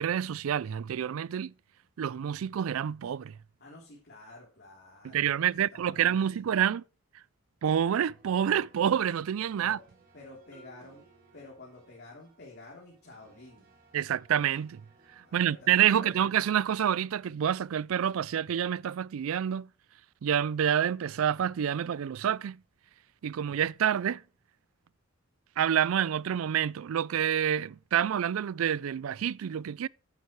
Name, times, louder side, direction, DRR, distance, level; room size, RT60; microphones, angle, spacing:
voice 1, 0.0-1.5 2.0-3.3 5.0-6.8 7.6-9.8 13.9-14.8 15.3-19.7 20.2-22.6 23.2-24.2 25.6-29.9, right 9 dB, 75° right, 0.4 m, -28 dB
voice 2, 3.6-6.4 9.6-9.8 10.1-11.1 11.3-13.7 15.2-16.4, left 2 dB, 55° left, 3.4 m, -50 dB
sound 1, 8.1-16.7, right 3 dB, 45° right, 3.4 m, -63 dB
Marimba xylophone, 10.5-12.3, right 3 dB, 10° left, 3.1 m, -61 dB
10.5 x 9.7 x 3.1 m
head